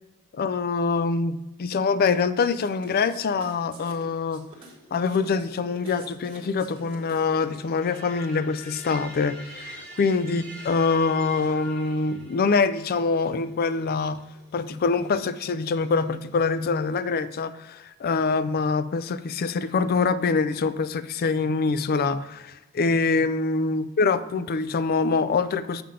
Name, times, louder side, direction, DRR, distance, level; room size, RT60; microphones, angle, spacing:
voice 1, 0.3-4.5 4.9-14.2 14.5-25.8, left 4 dB, 45° left, 14 dB, 0.3 m, -25 dB
sound 1, 2.5-7.4, right 3 dB, 25° right, 1.5 m, -50 dB
sound 2, 4.5-17.2, right 1 dB, 5° left, 1.5 m, -46 dB
7.0 x 5.7 x 4.9 m, 1.0 s
head